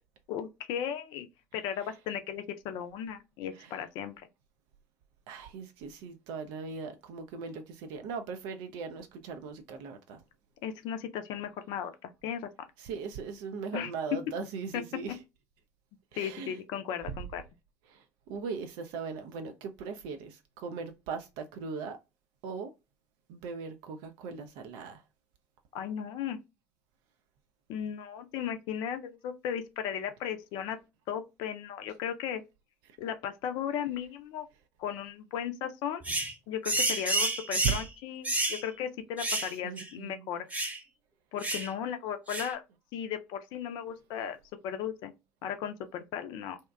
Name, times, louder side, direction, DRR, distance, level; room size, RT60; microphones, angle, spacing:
voice 1, 0.3-1.3 1.5-4.1 10.6-12.5 13.7-14.2 14.7-15.2 16.2-17.4 25.7-26.4 27.7-30.8 31.1-32.4 33.0-34.5 34.8-36.0 36.5-40.5 41.3-42.6 42.9-44.4 44.6-45.1 45.4-46.6, left 9 dB, 60° left, 0.5 m, -36 dB
voice 2, 5.3-10.2 12.8-15.2 16.1-16.6 17.9-22.0 22.4-22.7 23.3-25.0 37.6-37.7 39.6-40.3, right 5 dB, 65° right, 0.5 m, -39 dB
sound 1, 36.0-36.3 36.6-37.9 38.2-38.6 39.2-39.5 39.8-39.9 40.5-40.8 41.4-41.7 42.3-42.5, right 2 dB, 15° right, 0.8 m, -30 dB
2.8 x 2.1 x 2.2 m
hypercardioid pair, 60°, 9 cm